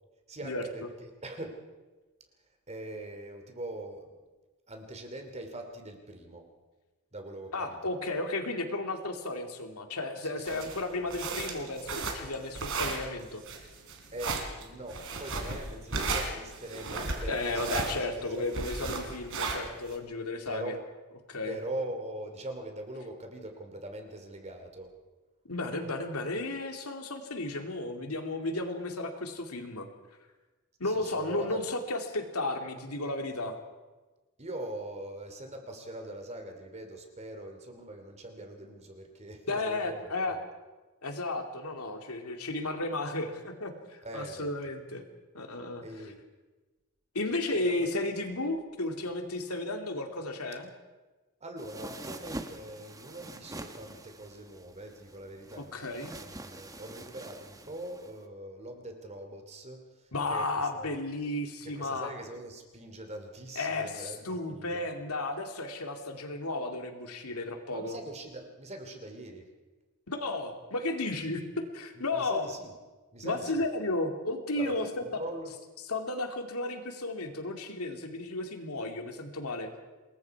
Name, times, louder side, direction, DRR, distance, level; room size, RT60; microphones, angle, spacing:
voice 1, 0.3-1.6 2.7-4.1 4.7-6.5 7.1-7.9 10.2-10.7 14.1-17.9 18.1-18.5 20.5-20.8 21.4-24.9 30.8-31.6 34.4-40.0 40.3-40.4 44.0-44.5 45.8-46.2 47.5-47.9 51.4-61.0 61.6-64.9 67.7-69.5 72.1-72.7 73.1-73.7 74.6-75.5, right 1 dB, 30° right, 5 dB, 2.7 m, -42 dB
voice 2, 7.5-13.4 17.3-20.8 21.3-21.5 25.4-29.9 30.8-33.6 39.5-40.4 41.0-45.0 45.3-45.8 47.1-50.7 55.6-56.1 60.1-62.1 63.6-68.0 70.1-71.4 71.7-72.5 73.2-74.9 75.9-79.7, left 2 dB, 80° left, 5 dB, 2.6 m, -33 dB
sound 1, 10.4-19.9, right 3 dB, 65° right, 3.5 m, -34 dB
sound 2, 51.6-58.2, right 2 dB, 15° right, 1.2 m, -45 dB
26.5 x 21.5 x 4.8 m, 1.2 s
head